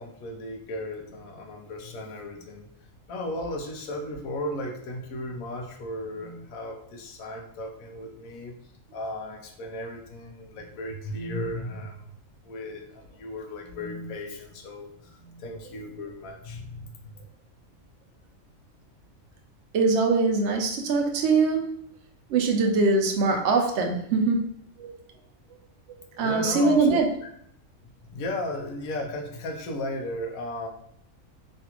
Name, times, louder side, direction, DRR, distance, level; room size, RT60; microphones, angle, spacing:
voice 1, 0.0-2.7 3.1-8.6 8.9-12.1 12.4-17.1 26.2-27.3 27.8-30.7, left 1 dB, 85° left, 3 dB, 1.1 m, -35 dB
voice 2, 19.7-21.8 22.3-24.4 24.8-24.9 26.2-27.1, right 3 dB, 65° right, 2 dB, 0.8 m, -22 dB
3.3 x 2.4 x 2.8 m, 0.70 s
omnidirectional pair, 1.4 m